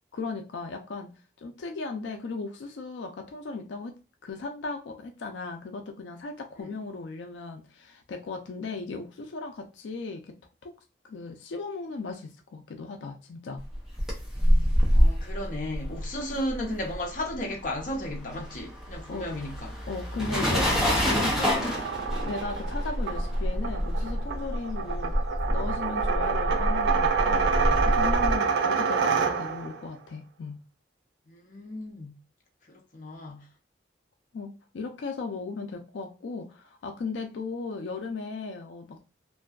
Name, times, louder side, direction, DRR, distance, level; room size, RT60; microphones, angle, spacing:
voice 1, 0.1-1.1 1.4-3.9 4.2-10.2 10.6-10.7 11.0-13.6 14.4-14.8 19.1-19.4 19.9-20.7 21.1-21.9 22.2-25.2 25.5-30.6 34.3-39.0, left 4 dB, 85° left, 0.4 m, -37 dB
sound 1, 13.7-17.4 17.6-28.4, equal, 5° right, 0.6 m, -26 dB
voice 2, 14.9-19.7 31.3-32.1 32.7-33.4, left 1 dB, 45° left, 0.6 m, -34 dB
sound 2, 21.5-29.8, right 5 dB, 75° right, 0.4 m, -27 dB
2.6 x 2.2 x 2.3 m
head